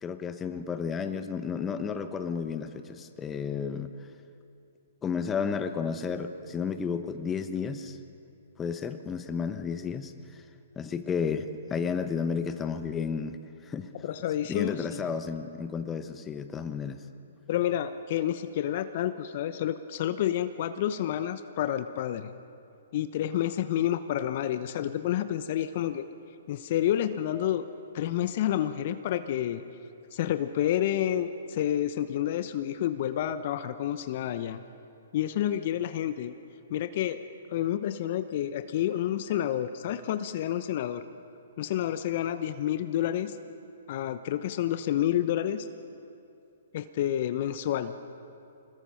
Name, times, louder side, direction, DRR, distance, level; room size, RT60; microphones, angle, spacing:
voice 1, 0.0-3.9 5.0-8.0 8.6-10.4 10.8-13.4 13.7-14.1 14.5-17.0, left 6 dB, 15° left, 9 dB, 1.1 m, -32 dB
voice 2, 14.0-15.1 17.5-22.3 22.9-26.1 26.5-27.6 27.9-29.6 30.1-34.6 35.1-36.3 36.7-37.2 37.5-41.0 41.6-43.3 43.9-45.7 46.7-48.0, left 11 dB, 50° left, 11 dB, 0.9 m, -29 dB
26.0 x 20.5 x 5.8 m, 2.6 s
hypercardioid pair, 125°, 0 cm